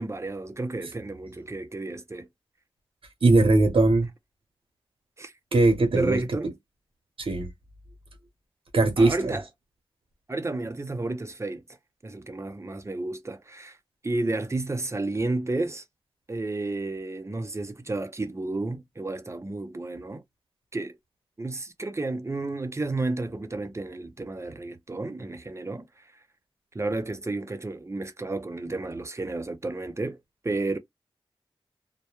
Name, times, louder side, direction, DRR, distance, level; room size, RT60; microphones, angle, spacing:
voice 1, 0.0-2.3 5.2-5.3 5.9-6.5 9.0-9.4 10.3-11.6 12.0-13.8 14.0-15.8 16.3-20.2 20.7-21.0 21.4-26.0 26.7-30.2 30.4-30.8, right 2 dB, 30° right, 0.6 m, -31 dB
voice 2, 3.2-4.1 5.5-6.2 7.2-7.5 8.7-9.4, right 2 dB, 70° right, 0.8 m, -20 dB
2.1 x 2.1 x 2.9 m
cardioid pair, 50°, 9 cm